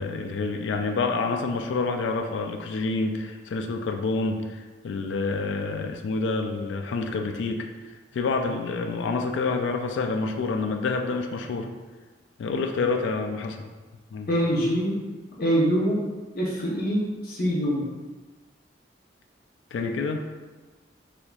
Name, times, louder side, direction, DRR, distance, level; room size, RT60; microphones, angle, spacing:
voice 1, 0.0-7.7 8.1-11.7 12.4-13.7 14.1-14.3 19.7-20.3, left 3 dB, 75° left, 5 dB, 0.3 m, -28 dB
voice 2, 14.3-14.9 15.4-16.0 16.3-17.8, equal, 55° left, -5 dB, 0.9 m, -24 dB
4.2 x 2.8 x 2.3 m, 1.3 s
head